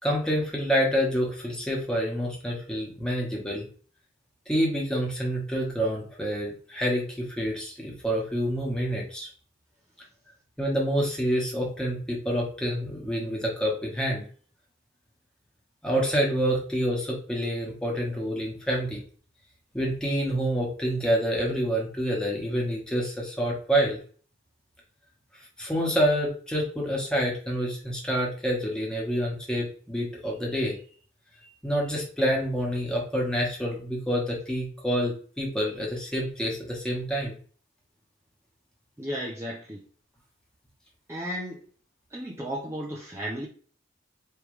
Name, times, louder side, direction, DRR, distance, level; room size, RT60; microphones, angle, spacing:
voice 1, 0.0-3.6 4.5-9.3 10.6-14.2 15.8-19.0 19.7-24.0 25.6-30.7 31.6-37.4, equal, 5° left, 1.4 m, -27 dB
voice 2, 39.0-39.8 41.1-41.6 42.1-43.5, equal, 15° right, 0.6 m, -34 dB
4.6 x 3.3 x 3.2 m
head